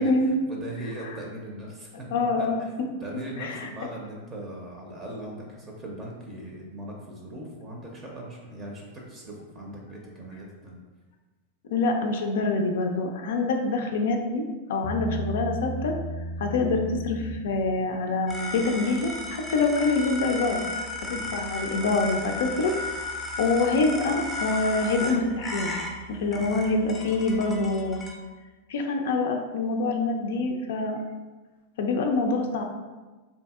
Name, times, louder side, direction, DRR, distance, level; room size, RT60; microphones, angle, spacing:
voice 1, 0.0-1.9 2.4-10.8 21.0-21.3 26.3-26.5, right 1 dB, 30° right, -2 dB, 0.6 m, -39 dB
voice 2, 2.1-2.9 3.4-3.7 11.7-14.4 14.7-15.9 16.4-20.6 21.1-22.7 23.4-25.7 26.1-28.0 28.7-31.0 31.8-32.6, left 3 dB, 70° left, 3 dB, 0.4 m, -25 dB
Bass guitar, 14.8-18.2, right 1 dB, 85° right, 0.6 m, -34 dB
sound 1, 18.3-28.1, left 2 dB, 15° left, 0.6 m, -35 dB
2.7 x 2.6 x 2.3 m, 1.3 s
hypercardioid pair, 105°, 0 cm